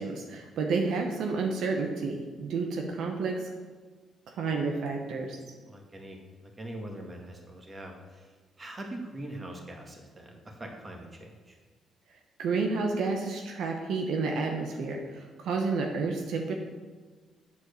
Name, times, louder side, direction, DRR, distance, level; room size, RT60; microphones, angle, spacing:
voice 1, 0.0-3.4 4.4-5.4 12.4-16.6, right 4 dB, 75° right, 2 dB, 1.0 m, -30 dB
voice 2, 5.7-11.6, right 1 dB, 30° right, 1 dB, 1.8 m, -43 dB
8.4 x 4.6 x 6.8 m, 1.4 s
cardioid pair, 90°, 0 cm